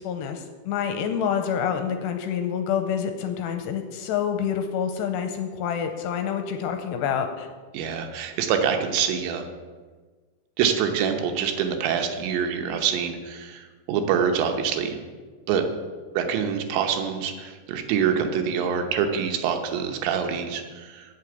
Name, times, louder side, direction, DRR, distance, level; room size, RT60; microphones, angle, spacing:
voice 1, 0.0-7.5, left 8 dB, 85° left, 6 dB, 2.7 m, -27 dB
voice 2, 7.7-9.4 10.6-14.9 15.5-15.6 16.2-21.1, right 7 dB, 80° right, 5 dB, 3.2 m, -25 dB
8.6 x 6.9 x 7.9 m, 1.4 s
omnidirectional pair, 5.2 m